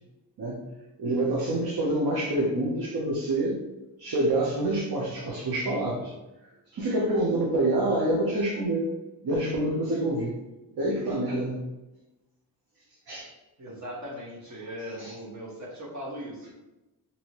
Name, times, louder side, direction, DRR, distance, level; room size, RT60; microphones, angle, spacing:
voice 1, 1.0-3.6 4.0-6.1 6.7-8.9 9.2-10.3 10.8-11.6 13.1-13.3 15.0-15.1, right 1 dB, 60° right, -3 dB, 0.8 m, -27 dB
voice 2, 13.6-16.5, equal, 45° right, -5 dB, 1.1 m, -39 dB
2.8 x 2.7 x 2.9 m, 1.0 s
cardioid pair, 65°, 42 cm